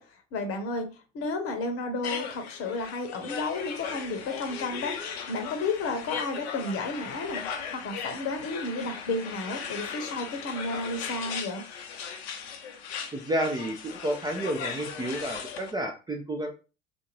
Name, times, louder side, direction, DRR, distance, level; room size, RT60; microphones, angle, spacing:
voice 1, 0.0-7.4 7.7-11.7, left 3 dB, 40° left, 0.8 m, -32 dB
sound 1, 2.0-15.7, left 7 dB, 70° left, 0.6 m, -38 dB
voice 2, 13.1-16.5, right 1 dB, 15° right, 0.4 m, -30 dB
2.5 x 2.5 x 3.1 m
figure-of-eight pair, 65°, 33 cm